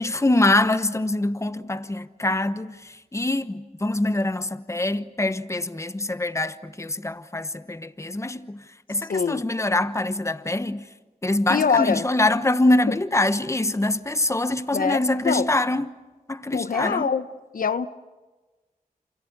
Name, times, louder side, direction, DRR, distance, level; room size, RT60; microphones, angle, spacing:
voice 1, 0.0-2.8 3.1-8.6 8.9-10.8 11.2-15.9 16.3-17.1, left 2 dB, 20° left, 1.1 m, -24 dB
voice 2, 9.0-9.4 11.5-12.1 12.9-13.0 14.7-15.5 16.5-17.2 17.5-17.9, left 6 dB, 75° left, 0.8 m, -24 dB
28.5 x 27.5 x 6.7 m
cardioid pair, 60°, 15 cm